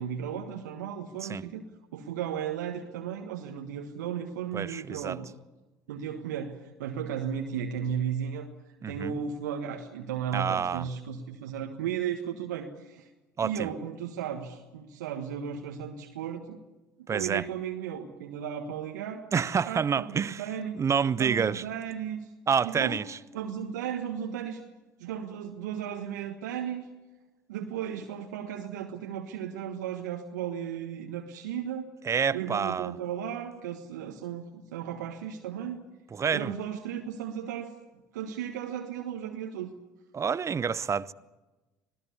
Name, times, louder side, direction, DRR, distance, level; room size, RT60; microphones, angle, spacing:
voice 1, 0.0-1.6 1.9-5.3 5.9-8.5 8.9-13.1 13.4-16.6 17.1-19.2 19.6-20.8 21.2-22.3 22.6-23.0 23.3-24.6 25.0-26.9 27.5-31.9 32.3-35.9 36.3-37.7 38.1-39.7, right 8 dB, 80° right, 1.5 m, -35 dB
voice 2, 4.5-5.2 8.8-9.2 10.3-10.9 13.4-13.7 17.1-17.4 19.3-20.4 20.7-21.6 22.5-23.2 32.0-33.0 36.1-36.5 40.1-41.1, right 6 dB, 30° right, 0.9 m, -28 dB
26.0 x 17.5 x 8.4 m
hypercardioid pair, 60°, 10 cm